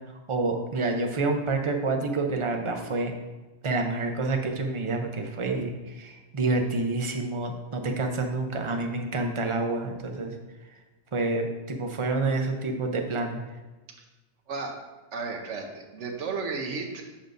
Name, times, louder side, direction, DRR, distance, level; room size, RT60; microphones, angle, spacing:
voice 1, 0.3-3.1 3.6-10.3 11.1-13.4, right 3 dB, 35° right, 3 dB, 0.6 m, -28 dB
voice 2, 15.1-17.0, right 4 dB, 75° right, 2 dB, 1.1 m, -33 dB
7.2 x 6.4 x 2.6 m, 1.2 s
omnidirectional pair, 1.3 m